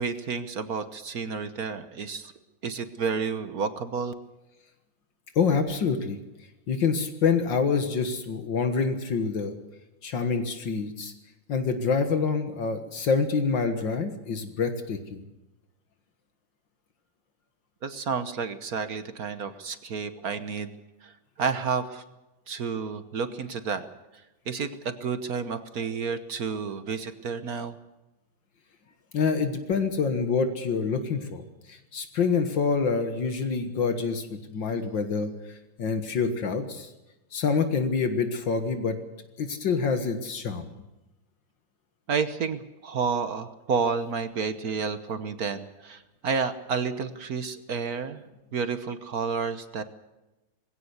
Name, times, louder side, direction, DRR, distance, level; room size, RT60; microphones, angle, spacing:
voice 1, 0.0-2.3 2.6-4.1 17.8-20.7 21.0-22.0 22.5-23.8 24.5-27.8 42.1-48.2 48.5-49.8, right 5 dB, 55° right, 11 dB, 1.4 m, -30 dB
voice 2, 5.4-6.2 6.7-9.6 10.0-11.1 11.5-15.2 29.1-31.4 31.7-35.3 35.8-36.9 37.3-39.0 39.4-40.7, left 5 dB, 70° left, 8 dB, 2.2 m, -26 dB
20.0 x 17.0 x 8.1 m, 0.99 s
omnidirectional pair, 2.1 m